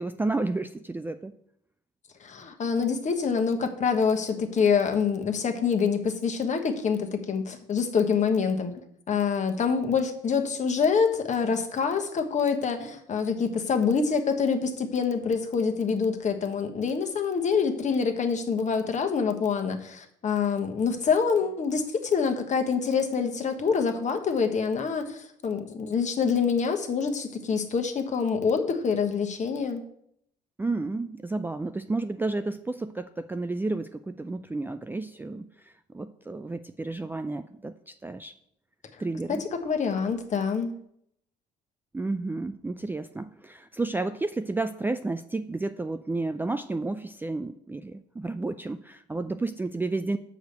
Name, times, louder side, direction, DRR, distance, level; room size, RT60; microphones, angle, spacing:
voice 1, 0.0-1.3 30.6-38.3 39.0-39.4 41.9-50.2, right 2 dB, 10° right, 9 dB, 0.4 m, -31 dB
voice 2, 2.2-8.7 9.1-29.8 39.3-40.7, left 5 dB, 40° left, 5 dB, 1.2 m, -26 dB
6.4 x 4.9 x 6.7 m, 0.73 s
hypercardioid pair, 65°, 19 cm